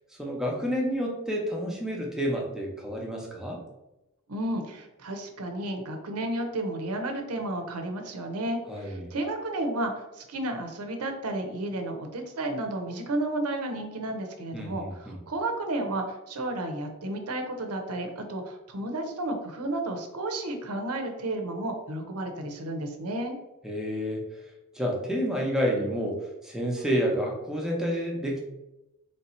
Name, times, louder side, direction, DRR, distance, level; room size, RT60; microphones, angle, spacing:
voice 1, 0.2-3.6 8.7-9.1 14.5-15.2 23.6-24.2 24.7-28.4, equal, 5° right, -1 dB, 0.7 m, -29 dB
voice 2, 4.3-23.4, right 1 dB, 90° right, 4 dB, 0.7 m, -32 dB
3.2 x 2.7 x 4.1 m, 0.94 s
head